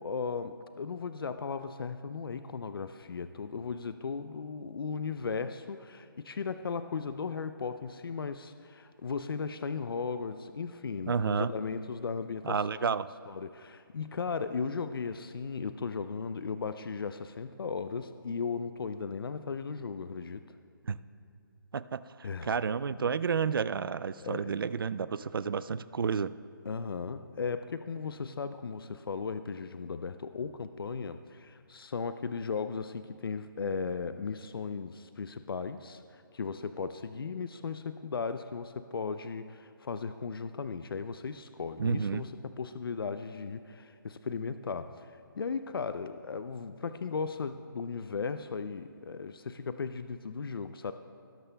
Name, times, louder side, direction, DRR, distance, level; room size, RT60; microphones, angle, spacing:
voice 1, 0.0-12.9 13.3-20.4 22.2-22.6 24.2-24.5 26.6-50.9, left 5 dB, 80° left, 11 dB, 0.5 m, -36 dB
voice 2, 11.1-11.5 12.4-13.1 20.9-21.0 21.7-22.0 22.4-26.3 41.8-42.2, right 6 dB, 75° right, 16 dB, 0.4 m, -30 dB
19.5 x 11.0 x 2.3 m, 2.5 s
hypercardioid pair, 175°, 12 cm